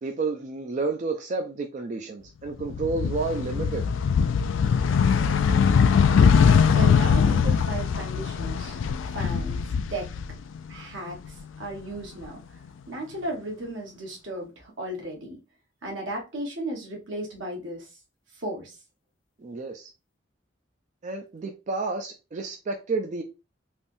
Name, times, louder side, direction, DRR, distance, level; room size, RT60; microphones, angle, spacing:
voice 1, 0.0-3.9 19.4-19.9 21.0-23.2, right 3 dB, 40° right, 0.3 m, -30 dB
sound 1, 2.6-10.7 11.1-12.3, left 6 dB, 80° left, 0.3 m, -22 dB
voice 2, 6.7-8.8 9.0-10.1 10.7-12.4 12.9-15.4 15.8-17.9 18.3-18.8, right 1 dB, 80° right, 1.2 m, -35 dB
3.4 x 2.6 x 2.5 m
head